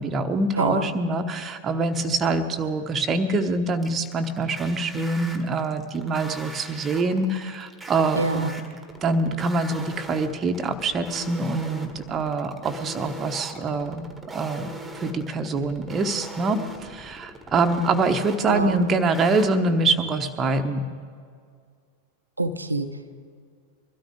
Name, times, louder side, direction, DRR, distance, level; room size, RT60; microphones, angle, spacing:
voice 1, 0.0-8.5 9.0-20.9, right 3 dB, 25° right, 6 dB, 1.0 m, -25 dB
voice 2, 0.6-0.9 8.2-8.6 18.5-18.8 22.4-22.9, right 2 dB, 80° right, 7 dB, 0.7 m, -26 dB
sound 1, 1.9-2.3 3.8-19.5, right 1 dB, 5° right, 1.5 m, -40 dB
22.5 x 13.0 x 3.6 m, 2.1 s
figure-of-eight pair, 90°, 0 cm